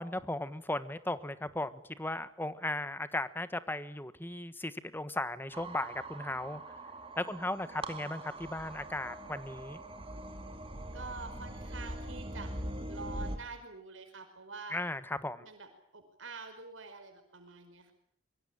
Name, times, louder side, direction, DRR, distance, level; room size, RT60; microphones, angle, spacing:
voice 1, 0.0-6.6 7.2-9.8 14.7-15.4, left 1 dB, 10° left, 14 dB, 1.3 m, -36 dB
sound 1, 5.5-13.4, right 1 dB, 30° right, 2.7 m, -42 dB
voice 2, 7.2-8.1 10.9-12.6 12.9-14.8 15.4-17.9, right 4 dB, 75° right, 5 dB, 5.1 m, -47 dB
24.5 x 23.5 x 8.9 m, 0.65 s
head